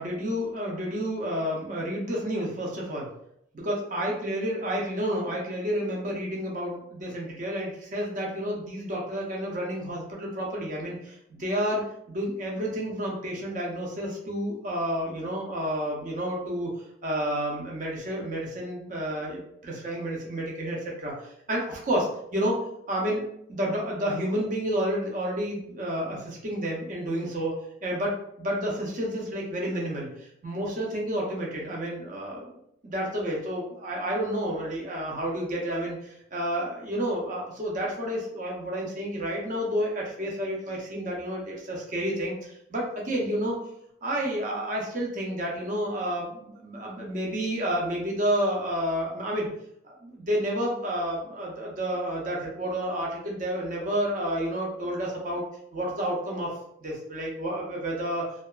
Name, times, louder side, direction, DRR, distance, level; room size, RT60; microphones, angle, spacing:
voice 1, 0.0-3.1 3.5-16.7 17.0-22.6 22.9-27.5 27.8-32.5 32.8-43.6 44.0-49.5 49.8-55.4 55.7-56.5 56.8-58.3, equal, 40° right, -2 dB, 0.6 m, -30 dB
2.8 x 2.3 x 2.2 m, 0.73 s
head